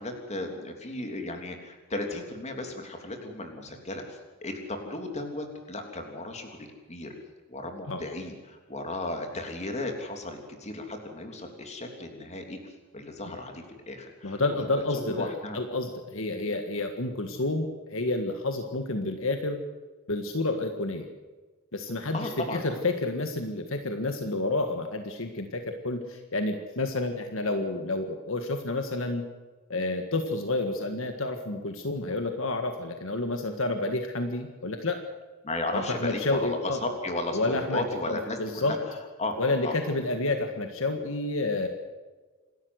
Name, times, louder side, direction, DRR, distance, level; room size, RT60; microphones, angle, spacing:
voice 1, 0.0-7.1 7.5-15.6 22.1-22.6 35.4-38.8 39.2-39.4 39.6-39.8, left 2 dB, 30° left, 4 dB, 3.3 m, -35 dB
voice 2, 14.2-19.6 20.1-21.1 21.7-29.2 29.7-35.0 35.7-36.8 37.3-38.8 39.4-41.7, left 2 dB, 65° left, 6 dB, 1.7 m, -29 dB
27.5 x 13.0 x 8.0 m, 1.4 s
head